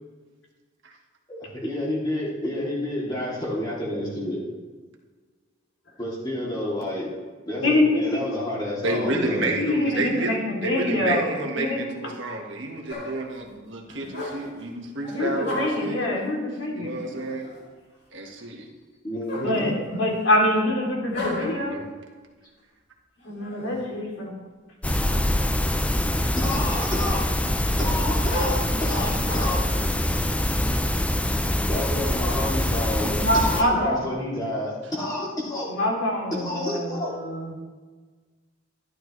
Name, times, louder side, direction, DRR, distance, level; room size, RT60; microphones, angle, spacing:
voice 1, 1.3-4.4 6.0-7.1 7.4-9.5 19.0-19.7 26.4-27.2 27.8-29.7 31.7-35.7 36.3-37.1, left 1 dB, 20° left, -5 dB, 2.9 m, -29 dB
voice 2, 7.6-8.2 9.6-11.8 13.9-14.0 15.1-16.9 19.4-21.8 23.2-24.3 33.2-34.0 35.7-37.5, left 1 dB, 75° left, -2 dB, 3.1 m, -25 dB
voice 3, 8.8-16.0 16.8-17.5 18.1-18.7 21.4-21.8, right 2 dB, 75° right, 1 dB, 1.6 m, -30 dB
sound 1, 12.9-13.3 14.0-14.6 15.0-16.0 16.9-17.7 19.3-20.3 21.1-21.7 23.2-23.9 25.0-25.6 26.1-26.9 27.4-29.7 30.4-31.5, left 1 dB, 60° left, 2.3 m, -36 dB
sound 2, 24.8-33.6, left 1 dB, 5° left, 0.5 m, -24 dB
13.0 x 11.5 x 3.2 m, 1.4 s
head